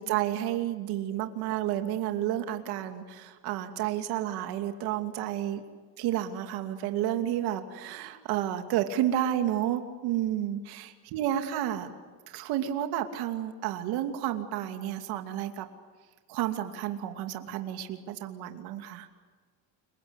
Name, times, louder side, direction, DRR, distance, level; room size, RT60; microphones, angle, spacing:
voice 1, 0.0-5.6 6.0-11.9 12.3-15.7 16.3-19.1, right 11 dB, 70° right, 6 dB, 2.7 m, -31 dB
29.5 x 23.5 x 8.3 m, 1.5 s
cardioid pair, 165°, 39 cm